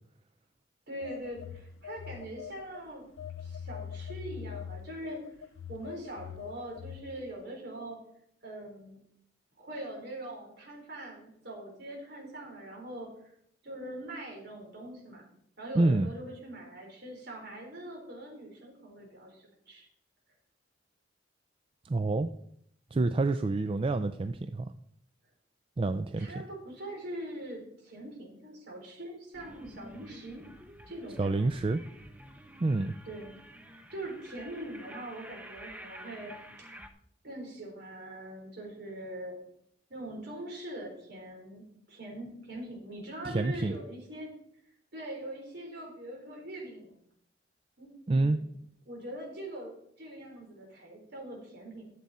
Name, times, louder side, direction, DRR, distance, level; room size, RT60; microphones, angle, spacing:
voice 1, 0.9-3.1 3.4-5.3 5.7-8.0 8.4-9.0 9.6-13.3 13.6-15.2 15.6-19.9 26.2-30.4 30.9-31.5 33.1-33.4 33.7-36.3 36.6-36.8 37.2-39.5 39.9-41.6 41.9-44.3 44.9-47.0 47.8-48.5 48.9-49.7 50.0-51.8, right 1 dB, 60° right, 0 dB, 4.0 m, -42 dB
Telephone, 1.0-2.8 3.2-7.3, left 7 dB, 90° left, 0.4 m, -43 dB
voice 2, 15.7-16.1 21.8-22.3 22.9-24.7 25.8-26.3 31.2-31.8 32.6-33.0 43.2-43.8 48.1-48.4, right 2 dB, 30° right, 10 dB, 0.4 m, -27 dB
sound 1, 29.3-36.9, equal, 10° right, 0.8 m, -50 dB
13.0 x 7.4 x 4.2 m, 0.71 s
head